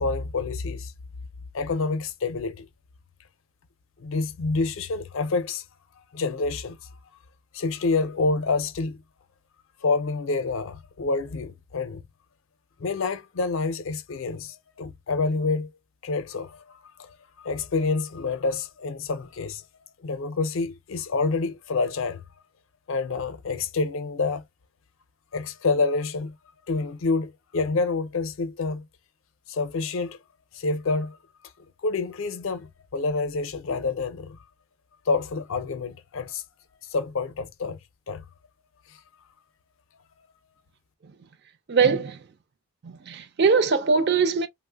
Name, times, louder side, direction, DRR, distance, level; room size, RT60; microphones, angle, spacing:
voice 1, 0.0-0.9 1.5-2.7 4.0-5.6 6.1-6.9 7.5-9.0 9.8-12.0 12.8-15.7 16.0-17.1 17.4-19.6 20.0-22.2 22.9-24.4 25.3-26.3 26.7-28.8 29.5-30.2 30.5-31.2 31.8-34.4 35.1-36.4 36.9-37.8 38.1-38.2 38.9-39.0, left 3 dB, 65° left, 0.5 m, -27 dB
voice 2, 41.7-42.2 42.8-44.5, right 5 dB, 50° right, 0.4 m, -21 dB
3.1 x 2.0 x 2.2 m
head